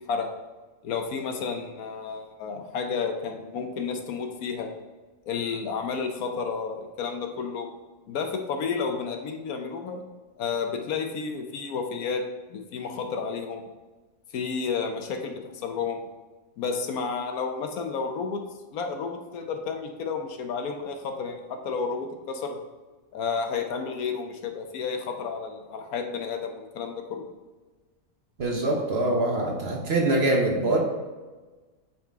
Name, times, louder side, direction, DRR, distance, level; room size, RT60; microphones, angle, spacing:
voice 1, 0.8-4.7 5.3-7.7 8.1-10.0 10.4-12.2 12.5-13.7 14.3-16.1 16.6-18.4 18.7-22.6 23.1-27.3, left 5 dB, 75° left, 5 dB, 1.2 m, -31 dB
voice 2, 28.4-30.8, right 2 dB, 45° right, 0 dB, 1.1 m, -24 dB
8.8 x 4.2 x 3.6 m, 1.3 s
omnidirectional pair, 1.6 m